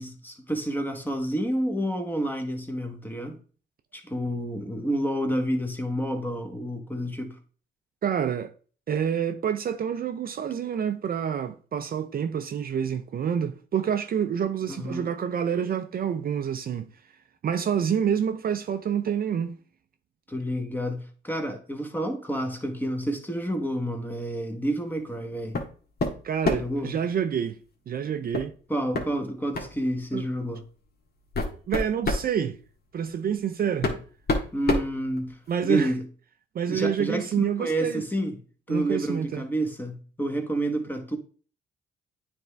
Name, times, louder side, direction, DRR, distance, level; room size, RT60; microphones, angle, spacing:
voice 1, 0.0-3.4 3.9-7.4 14.7-15.0 20.3-25.6 26.5-26.9 28.7-30.6 34.5-36.0 36.7-38.4 38.7-41.2, right 1 dB, 10° left, 1.3 m, -29 dB
voice 2, 8.0-8.5 8.9-16.9 17.4-19.6 26.2-27.6 27.9-28.5 30.1-30.2 31.7-32.6 32.9-33.9 35.5-35.9 36.5-38.0 38.7-39.4, right 8 dB, 50° right, 0.5 m, -27 dB
sound 1, 25.5-25.7 26.0-26.8 28.3-28.5 28.9-29.1 29.5-29.7 30.6-30.7 31.1-32.3 33.3-33.4 33.8-35.6, left 2 dB, 55° left, 1.7 m, -27 dB
9.1 x 3.5 x 3.3 m
cardioid pair, 90°, 20 cm